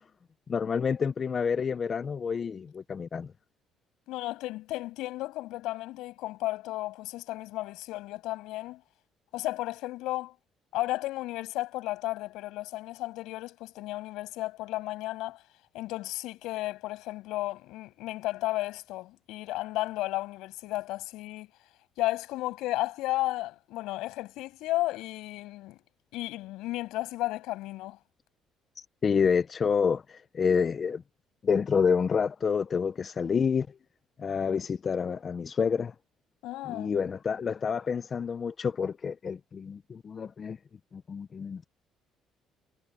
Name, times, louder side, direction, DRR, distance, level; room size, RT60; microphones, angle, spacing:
voice 1, 0.5-3.3 29.0-31.0 31.4-33.7 34.2-35.9 36.7-40.6 40.9-41.6, left 6 dB, 35° left, 0.6 m, -28 dB
voice 2, 4.1-8.8 9.3-10.3 10.7-15.4 15.7-21.5 22.0-25.8 26.1-28.0 36.4-36.9, left 17 dB, 90° left, 6.6 m, -33 dB
cardioid pair, 125°, 0 cm